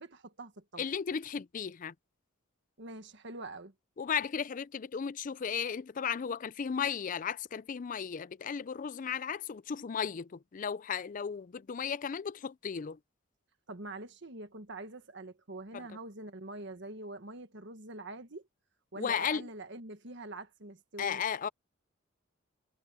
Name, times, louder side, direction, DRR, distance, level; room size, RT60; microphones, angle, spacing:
voice 1, 0.0-0.8 2.8-3.7 13.7-18.5 18.9-21.2, right 2 dB, 55° right, 1.5 m, -44 dB
voice 2, 0.8-1.9 4.0-13.0 15.7-15.9 19.0-19.5 21.0-21.5, left 7 dB, 40° left, 0.4 m, -35 dB
head